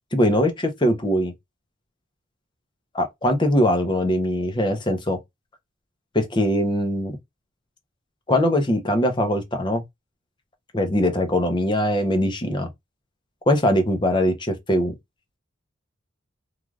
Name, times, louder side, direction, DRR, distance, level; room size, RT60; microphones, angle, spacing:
voice 1, 0.1-1.3 2.9-5.2 6.1-7.2 8.3-9.8 10.7-12.7 13.5-14.9, left 1 dB, 25° left, 0.6 m, -21 dB
3.2 x 2.4 x 2.4 m
head